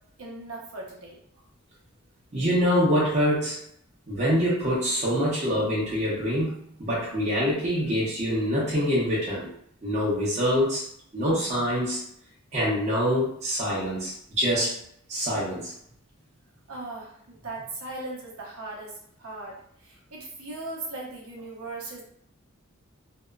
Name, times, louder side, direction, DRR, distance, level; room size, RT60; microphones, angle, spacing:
voice 1, 0.2-1.2 16.7-22.0, right 2 dB, 90° right, -2 dB, 0.8 m, -38 dB
voice 2, 2.3-3.6 4.1-6.5 6.8-9.5 9.8-10.8 11.1-12.0 12.5-14.7 15.1-15.7, equal, 30° right, -8 dB, 0.8 m, -25 dB
2.7 x 2.1 x 2.3 m, 0.68 s
head